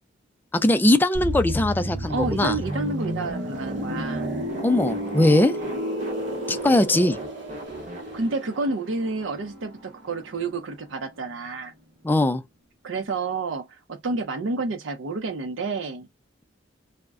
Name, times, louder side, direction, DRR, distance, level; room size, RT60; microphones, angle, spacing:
voice 1, 0.5-2.6 4.6-5.6 6.5-7.2 12.0-12.4, left 1 dB, 10° left, 0.3 m, -20 dB
sound 1, 1.1-10.8 11.1-11.3, equal, 65° right, 0.9 m, -32 dB
sound 2, 2.1-9.5, right 1 dB, 40° right, 0.7 m, -42 dB
voice 2, 2.1-4.3 5.5-5.8 8.1-11.7 12.8-16.1, right 3 dB, 85° right, 0.6 m, -30 dB
2.3 x 2.1 x 3.4 m
head